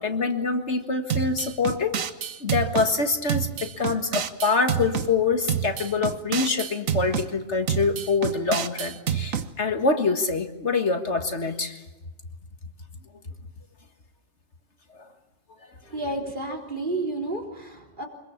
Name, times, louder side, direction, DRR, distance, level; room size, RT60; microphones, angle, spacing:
voice 1, 0.0-2.0 2.4-11.8 14.9-15.1 15.6-15.8, left 4 dB, 60° left, 5 dB, 2.0 m, -25 dB
sound 1, 1.1-2.9 3.3-5.1 5.5-7.3 7.7-9.5, right 8 dB, 85° right, 1.5 m, -28 dB
voice 2, 15.9-18.1, right 2 dB, 40° right, 2 dB, 4.0 m, -31 dB
25.0 x 22.5 x 7.2 m, 1.1 s
omnidirectional pair, 1.4 m